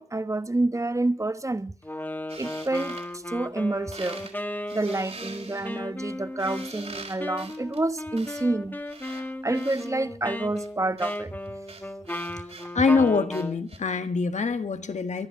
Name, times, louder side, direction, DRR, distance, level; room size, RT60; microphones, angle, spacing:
voice 1, 0.0-1.7 2.4-4.3 4.7-11.4, right 2 dB, 25° right, 1.1 m, -29 dB
Wind instrument woodwind instrument, 1.8-13.6, left 1 dB, 15° left, 1.8 m, -36 dB
sound 1, 2.3-3.7 3.9-4.3 4.7-9.9 10.6-13.8, right 3 dB, 65° right, 4.7 m, -44 dB
voice 2, 12.7-15.3, left 4 dB, 85° left, 1.7 m, -24 dB
24.0 x 11.5 x 4.7 m
wide cardioid pair, 70°, 12 cm